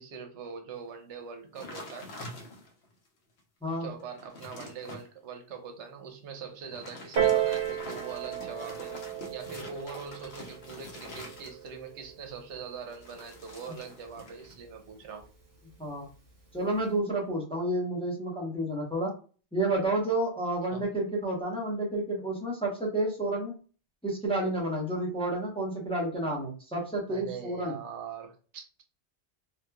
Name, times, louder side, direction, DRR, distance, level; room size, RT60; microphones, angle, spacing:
voice 1, 0.0-2.1 3.7-8.9 9.3-15.2 20.7-20.8 27.1-28.6, right 6 dB, 85° right, 5 dB, 0.9 m, -42 dB
sound 1, 1.6-2.9 3.4-3.5 3.9-5.1 6.6-11.9 12.9-14.6 14.9-15.3, left 2 dB, 65° left, 0.9 m, -45 dB
Piano, 7.2-12.3 13.2-13.3, right 10 dB, 60° right, 1.1 m, -33 dB
voice 2, 16.5-19.1 19.5-23.5 24.0-27.7, right 1 dB, 5° left, -3 dB, 0.7 m, -30 dB
2.9 x 2.3 x 2.2 m, 0.37 s
omnidirectional pair, 1.2 m